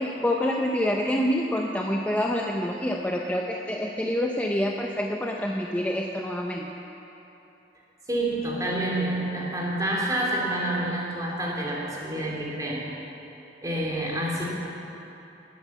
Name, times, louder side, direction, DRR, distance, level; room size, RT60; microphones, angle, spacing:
voice 1, 0.0-6.7, left 1 dB, 10° left, 0 dB, 0.7 m, -27 dB
voice 2, 8.1-12.8 13.6-14.4, right 1 dB, 20° right, -3 dB, 3.1 m, -28 dB
19.5 x 9.3 x 7.2 m, 3.0 s
head